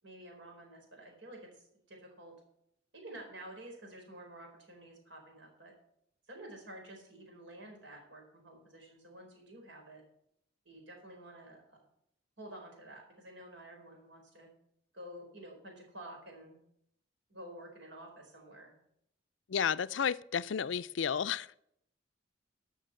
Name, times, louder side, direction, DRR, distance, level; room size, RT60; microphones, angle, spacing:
voice 1, 0.0-2.3 2.9-5.7 6.3-10.0 10.7-11.8 12.4-14.5 14.9-16.6 17.3-18.7, right 1 dB, 70° right, 2 dB, 4.3 m, -50 dB
voice 2, 19.5-21.6, left 7 dB, 75° left, 16 dB, 0.4 m, -32 dB
13.0 x 6.1 x 7.7 m, 0.74 s
head